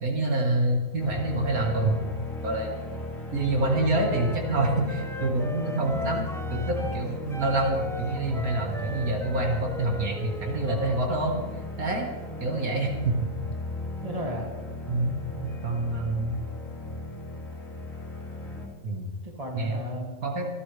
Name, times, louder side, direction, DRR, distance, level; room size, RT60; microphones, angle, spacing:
voice 1, 0.0-2.7 3.3-11.4 11.8-12.1 12.4-13.3 14.9-16.4 18.8-19.1 19.5-19.8 20.2-20.5, right 2 dB, 70° right, 0 dB, 2.5 m, -27 dB
sound 1, 1.0-18.7, left 1 dB, 55° left, 2.9 m, -37 dB
Wind instrument woodwind instrument, 3.5-7.0 7.3-11.2, left 1 dB, 5° left, 0.6 m, -38 dB
voice 2, 14.0-14.5 19.2-20.4, equal, 25° right, 0 dB, 2.7 m, -35 dB
25.0 x 12.5 x 3.5 m, 1.3 s
omnidirectional pair, 1.6 m